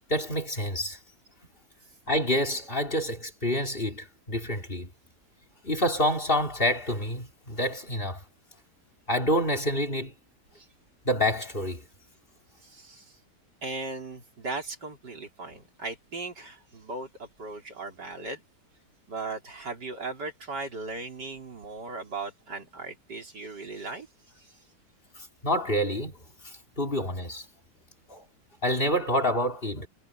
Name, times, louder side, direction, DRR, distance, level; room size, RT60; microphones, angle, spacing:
voice 1, 0.1-1.0 2.1-4.9 5.6-8.2 9.1-10.1 11.0-11.8 25.2-26.1 26.4-27.4 28.1-28.2 28.6-29.9, equal, 30° left, 4.2 m, -27 dB
voice 2, 12.6-13.2 13.6-18.4 19.1-24.1 24.4-24.6, right 3 dB, 90° right, 4.8 m, -38 dB
omnidirectional pair, 1.8 m